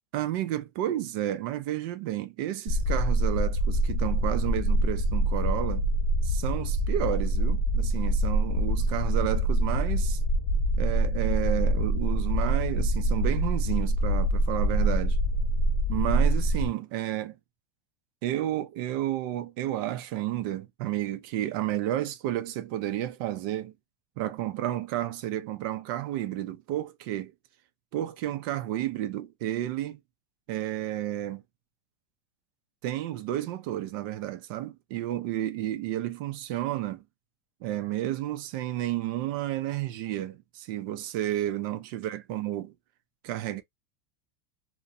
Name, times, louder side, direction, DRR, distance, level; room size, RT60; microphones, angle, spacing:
voice 1, 0.1-5.8 6.2-10.2 10.8-15.2 15.9-17.4 18.2-23.7 24.2-27.3 27.9-30.0 30.5-31.4 32.8-37.0 37.6-42.7 43.2-43.6, right 13 dB, 40° right, 0.4 m, -31 dB
sound 1, 2.7-16.7, right 1 dB, 25° left, 0.4 m, -25 dB
2.4 x 2.1 x 2.6 m
supercardioid pair, 175°, 17 cm